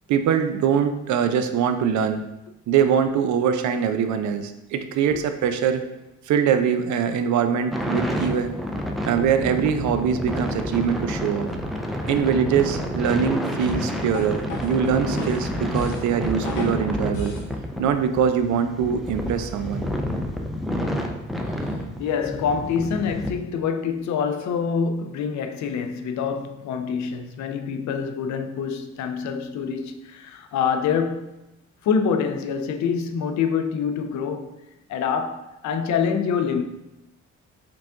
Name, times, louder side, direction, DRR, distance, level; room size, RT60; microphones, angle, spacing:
voice 1, 0.1-2.2 2.7-5.8 6.3-8.6 9.0-11.5 12.1-17.4 17.8-19.9, right 7 dB, 70° right, 0.5 m, -23 dB
sound 1, 7.7-23.3, equal, ahead, 0.4 m, -29 dB
sound 2, 13.7-17.5, equal, 90° left, 1.0 m, -33 dB
voice 2, 21.7-31.3 31.8-34.6 34.9-36.6, left 6 dB, 70° left, 0.5 m, -26 dB
4.7 x 2.4 x 3.5 m
cardioid pair, 90°, 30 cm